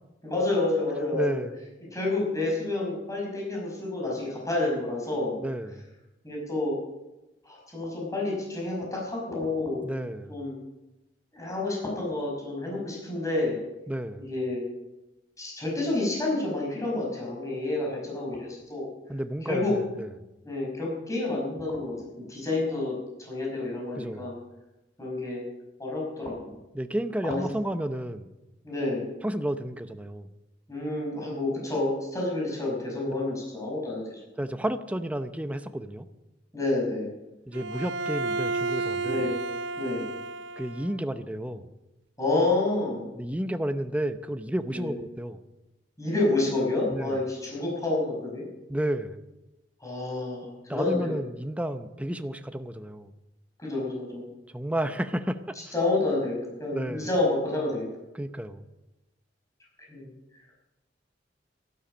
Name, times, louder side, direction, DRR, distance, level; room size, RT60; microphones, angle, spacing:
voice 1, 0.2-1.4 1.9-5.4 6.2-6.7 7.4-9.8 10.3-10.6 11.3-13.6 14.3-14.6 15.4-18.9 19.5-19.7 20.5-24.4 25.0-25.4 25.8-26.5 27.2-27.4 28.6-29.1 30.7-34.2 36.5-37.1 39.0-39.4 39.8-40.0 42.2-43.1 44.7-44.9 46.0-48.5 49.8-51.2 53.6-54.3 55.6-57.9 59.9-60.1, left 2 dB, 20° left, -3 dB, 5.3 m, -29 dB
voice 2, 1.1-1.6 5.4-5.9 9.8-10.4 13.9-14.3 19.1-20.3 24.0-24.3 26.7-28.3 29.2-30.3 34.4-36.1 37.5-39.2 40.6-41.7 43.1-45.4 46.9-47.2 48.7-49.2 50.7-53.1 54.5-55.6 56.7-57.1 58.1-58.6, right 1 dB, 10° right, 9 dB, 0.7 m, -32 dB
Bowed string instrument, 37.5-41.0, right 3 dB, 75° right, 0.5 m, -31 dB
13.0 x 12.0 x 6.2 m, 1.0 s
head